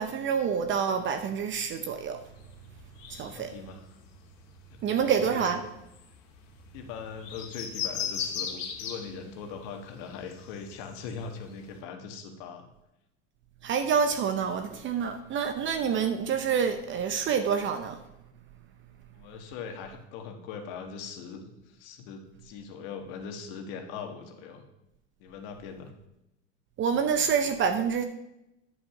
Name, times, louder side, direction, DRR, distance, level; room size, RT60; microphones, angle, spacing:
voice 1, 0.0-2.2 3.1-3.5 4.8-5.6 13.6-18.0 26.8-28.0, right 7 dB, 30° right, 8 dB, 0.7 m, -27 dB
sound 1, 2.2-11.8, left 7 dB, 75° left, 2.0 m, -40 dB
voice 2, 3.3-3.8 4.7-5.6 6.7-12.7 19.1-24.6 25.2-25.9, left 6 dB, 55° left, 4 dB, 1.6 m, -41 dB
9.6 x 5.7 x 5.8 m, 0.88 s
supercardioid pair, 115°, 38 cm